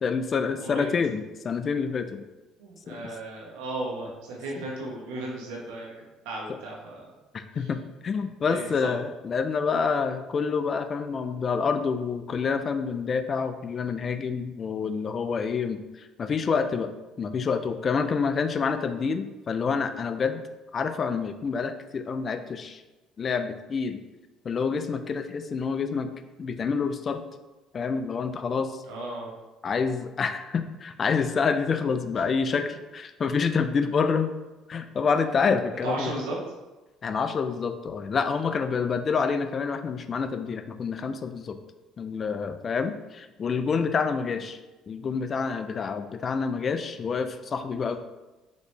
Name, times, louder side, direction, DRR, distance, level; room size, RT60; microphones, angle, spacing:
voice 1, 0.0-2.2 2.9-3.0 4.6-4.7 7.3-16.9 17.2-20.4 20.7-22.8 23.2-24.0 24.4-26.1 26.4-27.2 27.7-28.8 29.6-34.3 34.7-36.1 37.0-41.6 42.0-44.6 44.9-48.0, left 5 dB, 40° left, 9 dB, 0.3 m, -27 dB
voice 2, 2.6-5.9 6.2-7.1 8.5-8.9 28.9-29.3 35.8-36.4, right 2 dB, 85° right, -3 dB, 1.0 m, -35 dB
4.1 x 2.9 x 3.3 m, 1.1 s
supercardioid pair, 90°, 0 cm